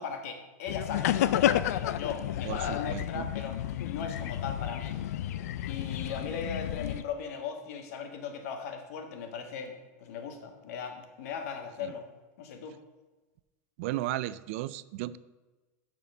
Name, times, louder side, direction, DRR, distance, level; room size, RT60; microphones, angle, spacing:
voice 1, 0.0-3.6 3.9-5.0 5.7-12.1 12.4-12.7, left 6 dB, 70° left, 5 dB, 1.5 m, -38 dB
sound 1, 0.7-7.0, left 12 dB, 85° left, 0.4 m, -31 dB
voice 2, 2.4-3.3 13.8-15.2, right 15 dB, 55° right, 17 dB, 0.4 m, -35 dB
7.0 x 6.2 x 6.4 m, 1.2 s
supercardioid pair, 160°, 8 cm